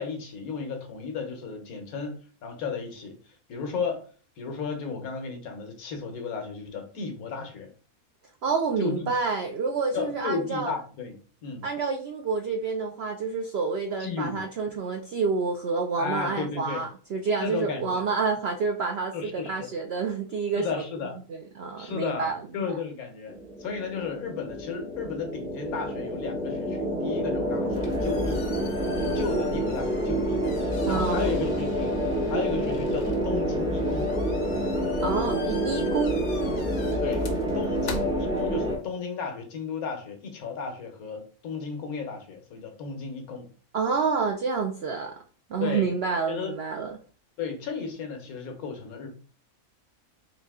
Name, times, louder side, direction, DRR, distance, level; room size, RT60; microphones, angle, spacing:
voice 1, 0.0-4.0 4.4-7.7 8.8-9.1 9.9-11.6 14.0-14.5 16.0-16.8 17.4-18.1 19.1-19.7 20.6-21.2 21.8-28.5 29.0-32.0 32.3-34.2 37.0-43.5 45.6-45.9 46.3-46.5 47.4-49.1, left 5 dB, 75° left, 1.3 m, -34 dB
voice 2, 8.4-10.7 11.6-20.7 21.6-22.4 30.9-31.3 35.0-36.2 43.7-45.2 45.5-47.0, right 5 dB, 75° right, 0.6 m, -28 dB
sound 1, 23.3-38.8, equal, 5° right, 0.4 m, -28 dB
sound 2, 27.5-38.9, left 4 dB, 60° left, 0.9 m, -45 dB
4.0 x 2.7 x 3.4 m
omnidirectional pair, 1.6 m